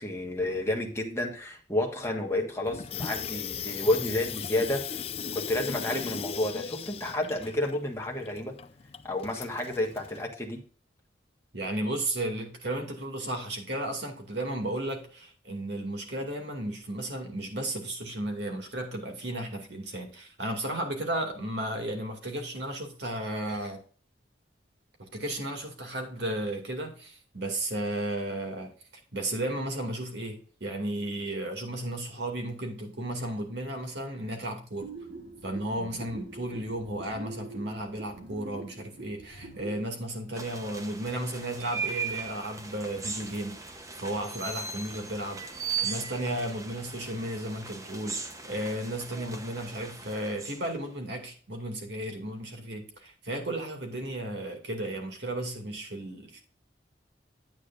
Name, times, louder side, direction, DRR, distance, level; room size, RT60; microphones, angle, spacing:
voice 1, 0.0-5.0 5.3-8.6 9.0-10.6, left 1 dB, 15° left, 1 dB, 1.4 m, -30 dB
Water tap faucet / Sink (filling or washing), 2.7-10.2, left 7 dB, 35° left, 0.5 m, -38 dB
voice 2, 11.5-23.8 25.0-28.7 29.1-34.9 35.4-56.4, right 1 dB, 70° right, 3 dB, 2.4 m, -34 dB
sound 1, 34.8-39.8, right 2 dB, 55° right, 1.5 m, -44 dB
sound 2, 40.3-50.9, right 5 dB, 20° right, 0.8 m, -38 dB
9.6 x 8.5 x 2.5 m, 0.42 s
head